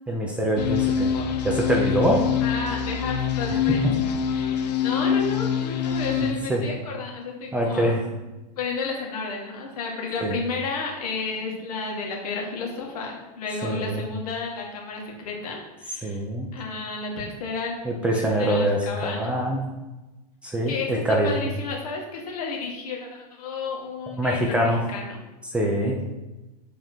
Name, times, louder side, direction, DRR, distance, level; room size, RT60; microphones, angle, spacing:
voice 1, 0.1-1.1 1.4-2.2 3.5-3.9 6.2-6.7 7.5-8.0 10.2-10.4 13.6-14.0 16.0-16.5 17.8-19.7 20.4-21.4 24.2-24.8 25.5-26.0, right 1 dB, 5° right, -1 dB, 0.6 m, -24 dB
sound 1, 0.6-6.3, left 8 dB, 85° left, 0.8 m, -25 dB
voice 2, 2.4-4.0 4.3-8.0 8.6-16.2 16.5-17.8 18.3-19.3 20.7-25.2 25.9-26.1, left 4 dB, 65° left, -1 dB, 2.0 m, -32 dB
7.7 x 3.7 x 4.5 m, 1.1 s
supercardioid pair, 160°, 21 cm